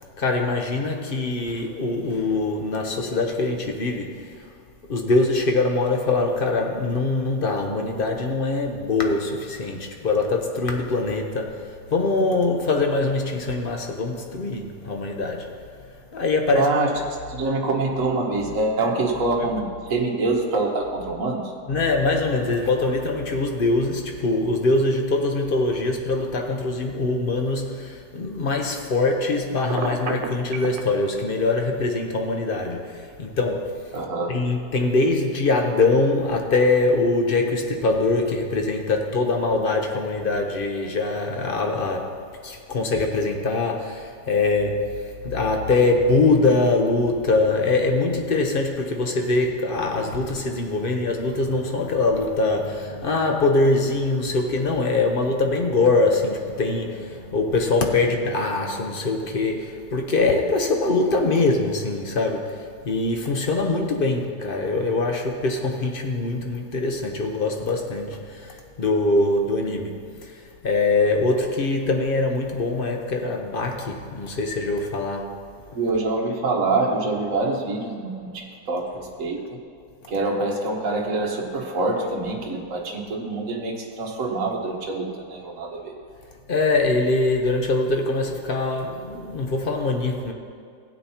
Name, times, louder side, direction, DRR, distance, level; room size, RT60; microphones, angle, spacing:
voice 1, 0.2-4.5 4.9-15.6 16.1-16.7 21.7-34.0 34.3-75.5 86.5-90.3, left 3 dB, 45° left, 0.8 m, -23 dB
voice 2, 16.5-16.9 17.3-21.5 33.9-34.3 75.7-79.6 80.1-86.0, right 3 dB, 50° right, 1.6 m, -25 dB
Telephone, 29.7-30.8, right 5 dB, 90° right, 1.5 m, -28 dB
16.0 x 8.9 x 2.9 m
omnidirectional pair, 1.9 m